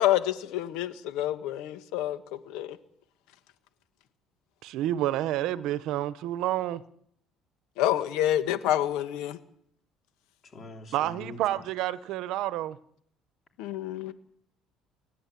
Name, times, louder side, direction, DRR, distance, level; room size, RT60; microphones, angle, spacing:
voice 1, 0.0-2.8 7.8-9.4 13.6-14.1, left 12 dB, 85° left, 11 dB, 1.5 m, -28 dB
voice 2, 4.6-6.8 10.9-12.8, right 13 dB, 65° right, 15 dB, 1.0 m, -29 dB
voice 3, 10.4-11.4, left 2 dB, 25° left, 3 dB, 3.6 m, -44 dB
29.5 x 11.0 x 8.5 m, 0.67 s
cardioid pair, 165°, 0 cm